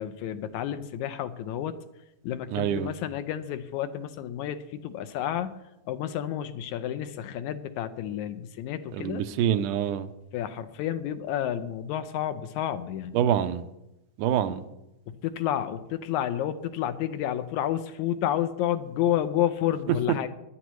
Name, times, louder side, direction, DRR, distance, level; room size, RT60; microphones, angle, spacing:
voice 1, 0.0-1.8 2.2-5.6 5.9-9.3 10.3-13.3 14.5-14.6 15.1-20.3, left 11 dB, 80° left, 11 dB, 2.0 m, -30 dB
voice 2, 2.5-2.9 8.9-10.1 13.1-13.7 14.2-14.6, right 10 dB, 85° right, 10 dB, 2.2 m, -26 dB
20.0 x 11.5 x 3.1 m, 0.90 s
omnidirectional pair, 3.5 m